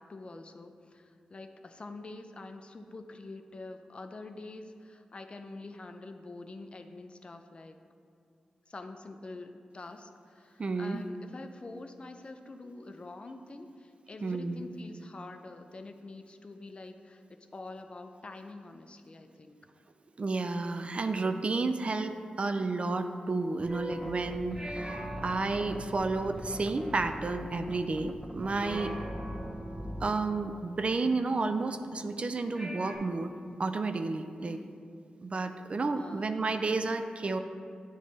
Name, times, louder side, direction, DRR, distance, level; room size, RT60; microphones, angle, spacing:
voice 1, 0.0-7.8 8.7-17.2 17.5-19.6 34.4-34.8 36.0-36.4, left 2 dB, 45° left, 6 dB, 0.5 m, -46 dB
voice 2, 10.6-11.0 14.2-14.6 20.2-28.9 30.0-33.3 33.6-34.6 35.2-37.4, right 3 dB, 45° right, 8 dB, 0.4 m, -31 dB
sound 1, 23.6-30.2, equal, ahead, 0.6 m, -43 dB
sound 2, 23.7-28.3 28.5-32.1 32.5-33.0, right 1 dB, 20° right, 1.1 m, -43 dB
8.7 x 3.1 x 4.0 m, 2.4 s
cardioid pair, 50°, 3 cm